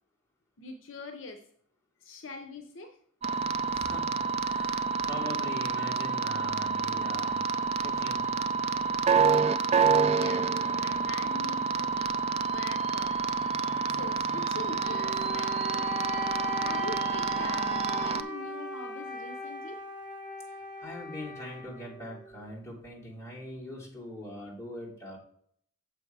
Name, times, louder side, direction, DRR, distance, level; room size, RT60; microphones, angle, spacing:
voice 1, 0.6-1.4 2.0-3.0 10.1-13.3 13.9-15.9 16.6-17.7 18.0-19.8, left 3 dB, 70° left, 6 dB, 0.7 m, -43 dB
sound 1, 3.2-18.2, right 5 dB, 30° right, 0.3 m, -28 dB
voice 2, 3.4-8.3 20.5-25.2, left 1 dB, 15° left, -5 dB, 2.8 m, -42 dB
Wind instrument woodwind instrument, 14.8-22.3, left 2 dB, 5° right, 1.9 m, -39 dB
6.9 x 5.8 x 4.6 m, 0.65 s
head